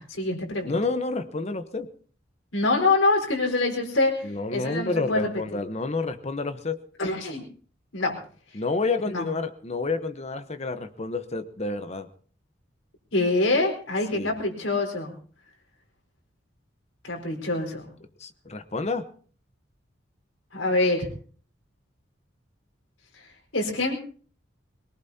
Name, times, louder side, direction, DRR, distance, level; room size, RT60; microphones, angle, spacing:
voice 1, 0.0-0.7 2.5-5.3 7.0-7.5 7.9-8.2 8.5-8.6 9.1-9.3 13.1-15.1 17.0-17.8 20.5-21.1 23.1-24.0, left 2 dB, 85° left, 0 dB, 4.4 m, -25 dB
voice 2, 0.6-1.9 4.2-6.8 8.5-12.1 14.1-14.3 18.2-19.1, left 3 dB, 35° left, 10 dB, 1.0 m, -29 dB
22.5 x 19.0 x 2.8 m, 0.43 s
head